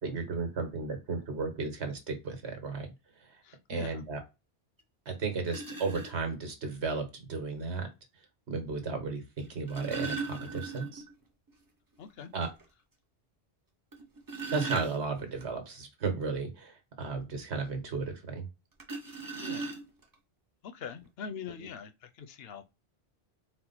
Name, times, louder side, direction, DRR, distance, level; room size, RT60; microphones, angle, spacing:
voice 1, 0.0-2.9 3.7-4.2 5.1-7.9 8.5-11.0 12.3-12.5 14.5-18.4, right 4 dB, 85° right, 1.4 m, -34 dB
voice 2, 3.4-4.0 12.0-12.3 19.1-19.8 20.6-22.6, left 7 dB, 70° left, 0.8 m, -43 dB
sound 1, 4.8-4.9 5.5-6.1 7.5-7.6 9.4-11.1 11.5-11.6 12.0-12.1 12.6-12.7 13.9-15.4 18.8-20.1 21.0-21.1 21.5-21.7, right 4 dB, 25° right, 0.6 m, -38 dB
4.4 x 2.0 x 3.9 m
omnidirectional pair, 1.1 m